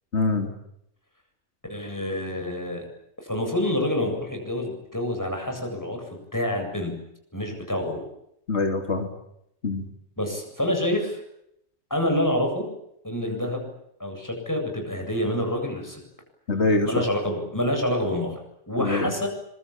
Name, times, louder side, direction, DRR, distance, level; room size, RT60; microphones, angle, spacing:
voice 1, 0.1-0.5 8.5-9.1 9.6-9.9 16.5-17.0 18.8-19.1, left 3 dB, 80° left, 4 dB, 3.3 m, -24 dB
voice 2, 1.7-2.9 3.2-6.0 6.3-6.9 7.3-8.0 10.2-11.2 11.9-12.6 13.0-13.7 14.0-16.0 16.8-18.4 18.7-19.3, left 1 dB, 15° left, 3 dB, 8.1 m, -27 dB
26.0 x 24.0 x 8.8 m, 0.77 s
omnidirectional pair, 1.1 m